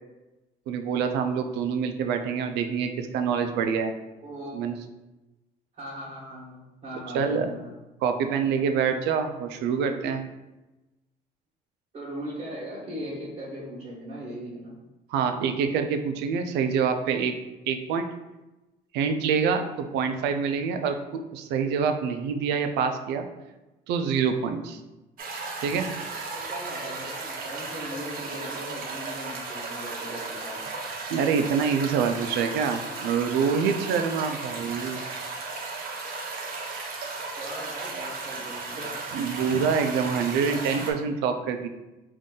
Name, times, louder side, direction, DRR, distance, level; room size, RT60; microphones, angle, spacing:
voice 1, 0.7-3.9 4.5-4.7 7.1-7.5 8.0-10.2 15.1-17.3 17.7-18.1 18.9-23.3 23.9-24.8 25.6-25.9 31.1-35.0 39.1-41.7, right 6 dB, 85° right, 7 dB, 0.4 m, -26 dB
voice 2, 4.2-4.6 5.7-7.8 8.2-8.4 11.9-14.7 26.4-30.7 37.4-39.0, equal, 40° right, -7 dB, 1.3 m, -39 dB
sound 1, 25.2-40.9, right 3 dB, 55° right, 0.8 m, -35 dB
3.7 x 2.6 x 3.7 m, 1.1 s
cardioid pair, 110°, 17 cm